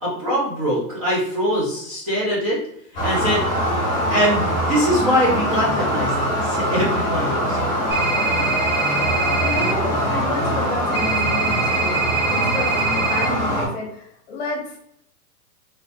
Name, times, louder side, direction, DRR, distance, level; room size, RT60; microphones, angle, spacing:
voice 1, 0.0-2.6 3.0-3.4 4.1-7.7 9.1-9.3, equal, 25° right, -7 dB, 0.6 m, -23 dB
sound 1, 3.0-13.7, equal, 15° left, 1.2 m, -22 dB
sound 2, 7.9-9.7 10.9-13.3, right 5 dB, 5° right, 1.1 m, -24 dB
voice 2, 8.3-14.8, left 2 dB, 40° left, 0 dB, 0.9 m, -31 dB
3.2 x 2.7 x 2.6 m, 0.75 s
hypercardioid pair, 170°, 48 cm